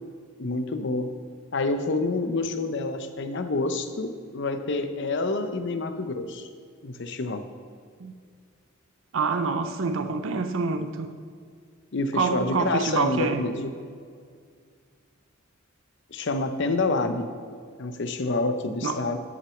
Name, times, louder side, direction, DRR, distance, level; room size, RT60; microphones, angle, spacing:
voice 1, 0.4-1.1 1.5-6.5 6.8-7.4 11.9-13.7 16.1-17.3 17.8-19.2, left 3 dB, 60° left, 8 dB, 0.7 m, -28 dB
voice 2, 9.1-11.1 12.1-13.4 18.8-19.0, right 4 dB, 75° right, 7 dB, 0.6 m, -26 dB
8.0 x 6.2 x 7.0 m, 2.1 s
head